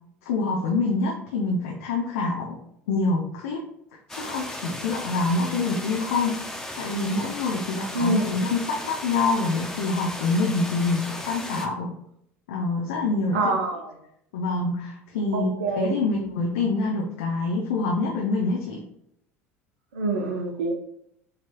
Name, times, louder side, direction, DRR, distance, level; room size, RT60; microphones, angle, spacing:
voice 1, 0.2-2.6 2.9-3.6 4.1-6.4 6.8-11.9 12.5-13.4 14.3-18.8, left 3 dB, 70° left, -2 dB, 0.7 m, -26 dB
sound 1, 4.1-11.7, left 1 dB, 5° left, 0.7 m, -36 dB
voice 2, 7.9-8.4 13.3-13.9 15.3-16.0 16.3-16.4 19.9-20.7, right 2 dB, 75° right, 4 dB, 0.7 m, -26 dB
6.7 x 3.2 x 2.3 m, 0.74 s
figure-of-eight pair, 70°, 7 cm